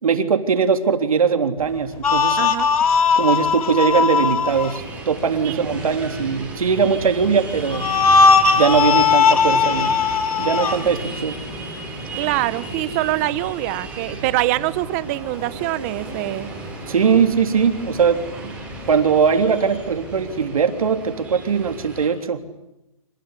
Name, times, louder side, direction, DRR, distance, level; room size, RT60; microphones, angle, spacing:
voice 1, 0.0-2.4 3.2-7.9 8.6-10.0 10.4-11.4 16.9-18.5 18.9-22.4, right 6 dB, 75° right, 6 dB, 3.5 m, -20 dB
sound 1, 1.6-20.5, equal, 15° left, 5.9 m, -39 dB
sound 2, 2.0-4.8 7.7-10.8, left 5 dB, 80° left, 2.8 m, -17 dB
voice 2, 2.4-2.7 5.4-5.6 12.2-16.5, right 18 dB, 25° right, 16 dB, 1.0 m, -24 dB
sound 3, 4.5-22.1, right 2 dB, 5° right, 6.7 m, -35 dB
27.0 x 21.0 x 9.9 m, 0.92 s
hypercardioid pair, 160°, 18 cm